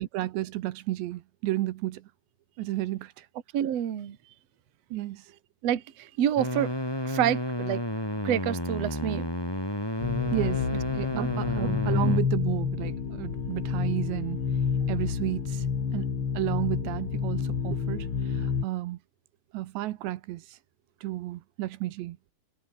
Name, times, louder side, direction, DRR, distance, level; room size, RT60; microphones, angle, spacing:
voice 1, 0.0-2.1 2.6-3.3 4.9-5.3 10.3-14.4 14.9-15.7 15.9-19.0 19.5-20.6 21.0-22.2, right 16 dB, 80° right, 3.2 m, -32 dB
voice 2, 3.5-4.2 5.6-6.7 7.1-7.8 8.2-9.3 11.1-11.3 11.6-11.7 12.0-12.2, right 10 dB, 50° right, 2.3 m, -28 dB
sound 1, 6.4-12.2, left 1 dB, 5° left, 5.1 m, -31 dB
sound 2, 10.0-18.6, left 6 dB, 40° left, 2.5 m, -29 dB
omnidirectional pair, 5.1 m